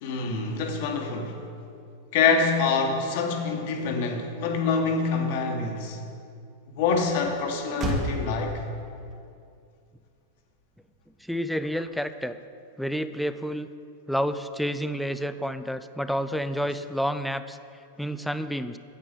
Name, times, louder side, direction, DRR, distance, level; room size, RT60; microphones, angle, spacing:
voice 1, 0.0-1.4 2.1-6.0 6.8-8.6, left 4 dB, 60° left, 3 dB, 1.3 m, -26 dB
Motor vehicle (road), 4.7-12.3, right 1 dB, 30° right, 1.6 m, -38 dB
voice 2, 11.2-12.4 12.8-13.7 14.1-17.6 18.0-18.8, equal, ahead, 11 dB, 0.4 m, -29 dB
8.6 x 7.8 x 5.3 m, 2.4 s
hypercardioid pair, 110°, 0 cm